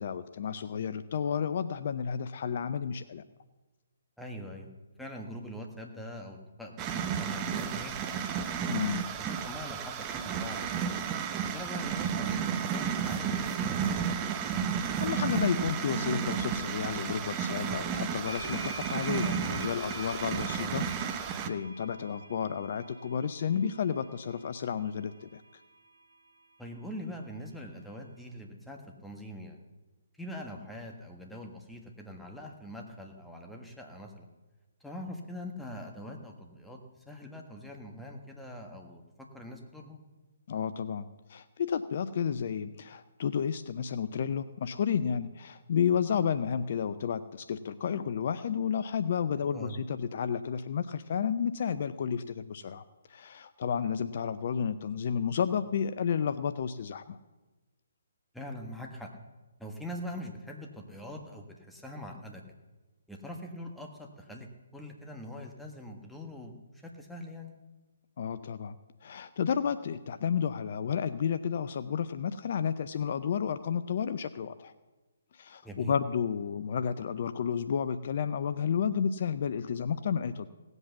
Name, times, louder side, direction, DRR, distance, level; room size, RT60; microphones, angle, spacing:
voice 1, 0.0-3.2 8.7-9.0 15.0-20.8 21.1-25.4 40.5-52.8 53.1-57.2 68.2-68.8 69.0-74.7 75.3-80.5, left 7 dB, 50° left, 12 dB, 0.5 m, -31 dB
voice 2, 4.2-4.7 5.0-8.3 9.2-11.0 11.4-14.6 20.5-20.7 26.6-29.6 30.2-34.3 34.8-40.0 49.4-49.8 58.3-59.1 59.6-62.4 63.1-66.5 66.8-67.5 75.6-75.9, left 1 dB, ahead, 1 dB, 1.6 m, -43 dB
sound 1, 6.8-21.5, right 7 dB, 25° right, 0.8 m, -32 dB
sound 2, 17.3-17.4 18.2-26.3, right 1 dB, 70° right, 1.9 m, -46 dB
17.5 x 8.1 x 7.1 m, 1.2 s
figure-of-eight pair, 140°, 0 cm